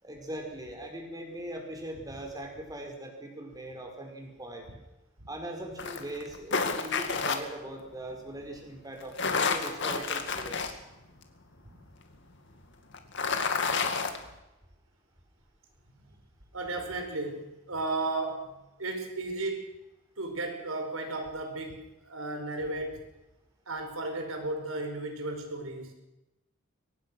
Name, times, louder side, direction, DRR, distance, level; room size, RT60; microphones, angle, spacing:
voice 1, 0.0-4.7 5.3-10.8, right 1 dB, 20° right, 2 dB, 5.1 m, -40 dB
sound 1, 5.8-7.4 9.0-10.7 11.2-11.3 12.9-14.2, left 5 dB, 60° left, 2.3 m, -29 dB
voice 2, 16.5-19.7 20.2-23.0 23.7-25.9, right 2 dB, 85° right, 4 dB, 5.2 m, -34 dB
23.5 x 18.5 x 6.4 m, 0.96 s
head